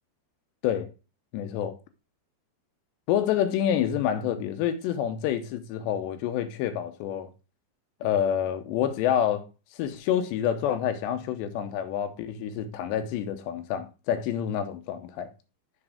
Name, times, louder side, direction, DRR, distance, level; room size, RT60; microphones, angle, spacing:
voice 1, 1.3-1.7 3.1-7.3 8.0-9.4 9.8-15.3, left 10 dB, 85° left, 3.0 m, -28 dB
6.5 x 4.9 x 4.8 m
omnidirectional pair, 4.9 m